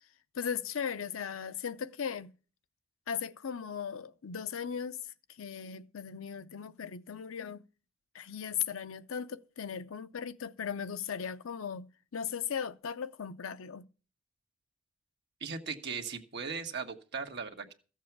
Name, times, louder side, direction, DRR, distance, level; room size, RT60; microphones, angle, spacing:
voice 1, 0.3-2.3 3.1-7.6 8.1-13.8, left 7 dB, 75° left, 0.6 m, -37 dB
voice 2, 15.4-17.7, right 5 dB, 55° right, 1.4 m, -38 dB
14.0 x 7.4 x 6.0 m
head